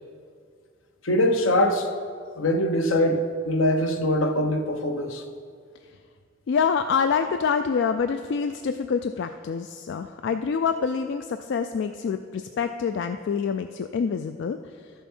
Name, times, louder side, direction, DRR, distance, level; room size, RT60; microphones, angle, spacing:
voice 1, 1.0-1.9 2.3-5.2, left 1 dB, 80° left, 7 dB, 0.8 m, -23 dB
voice 2, 6.5-14.6, left 6 dB, 60° left, 8 dB, 0.3 m, -26 dB
12.5 x 7.0 x 4.4 m, 2.1 s
head